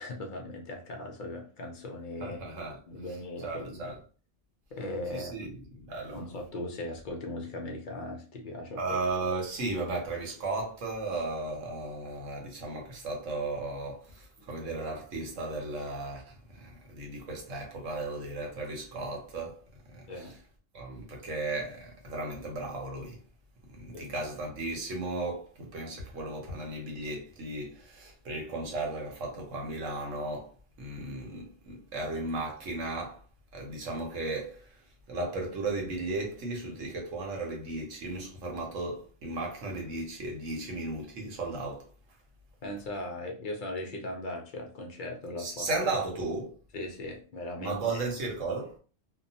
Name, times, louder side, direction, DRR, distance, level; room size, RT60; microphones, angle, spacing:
voice 1, 0.0-2.4 2.9-3.9 4.7-5.5 6.1-9.0 14.4-14.5 20.1-20.4 23.9-24.0 42.6-45.7 46.7-48.1, left 1 dB, 55° left, 0.6 m, -38 dB
voice 2, 2.2-2.8 3.4-4.0 5.1-5.5 5.9-6.2 8.8-19.6 19.9-20.3 20.7-23.2 23.7-30.5 30.8-33.2 33.5-34.7 35.1-41.9 45.4-46.6 47.6-48.8, right 2 dB, 75° right, 1.2 m, -35 dB
2.8 x 2.0 x 2.6 m
omnidirectional pair, 1.3 m